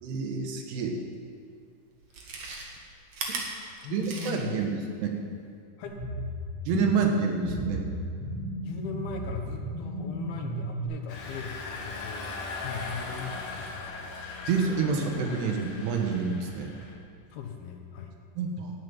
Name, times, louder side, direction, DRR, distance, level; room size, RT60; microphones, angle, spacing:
voice 1, 0.0-1.0 3.3-3.4 3.9-5.1 6.7-7.9 14.5-16.7 18.4-18.7, right 5 dB, 85° right, 2 dB, 3.5 m, -28 dB
Chewing mastication, 1.2-1.3 2.0-4.7 5.0-5.1, right 3 dB, 55° right, 1.8 m, -37 dB
voice 2, 3.8-4.7 5.8-6.0 8.6-14.5 17.3-18.1, left 6 dB, 75° left, 3 dB, 2.9 m, -39 dB
sound 1, 5.8-10.8, right 1 dB, 10° left, 2.1 m, -33 dB
Engine, 11.1-17.0, left 3 dB, 55° left, 2.2 m, -39 dB
12.5 x 7.6 x 9.3 m, 2.3 s
omnidirectional pair, 4.7 m